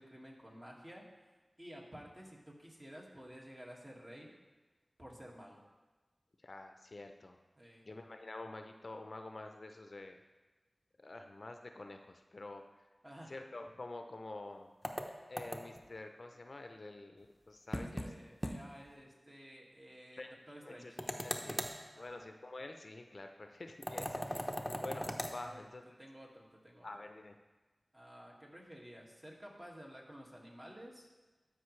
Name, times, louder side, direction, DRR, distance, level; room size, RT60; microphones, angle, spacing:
voice 1, 0.0-4.3 5.0-5.6 7.6-7.9 13.0-13.3 17.7-21.7 22.0-22.2 25.4-25.6 26.0-26.9 27.9-31.1, equal, 30° right, -3 dB, 1.9 m, -53 dB
voice 2, 6.4-7.4 7.8-10.2 11.0-12.6 13.3-14.7 15.3-18.1 20.1-20.3 20.6-20.9 21.2-21.7 22.0-25.8 26.8-27.4, left 2 dB, 60° left, 5 dB, 0.6 m, -48 dB
sound 1, 14.8-15.9 17.7-18.1 18.4-18.6 18.9-19.0 21.0-21.8 23.8-25.4, equal, 5° left, 0.8 m, -39 dB
12.5 x 5.3 x 3.2 m, 1.2 s
cardioid pair, 40°, 0 cm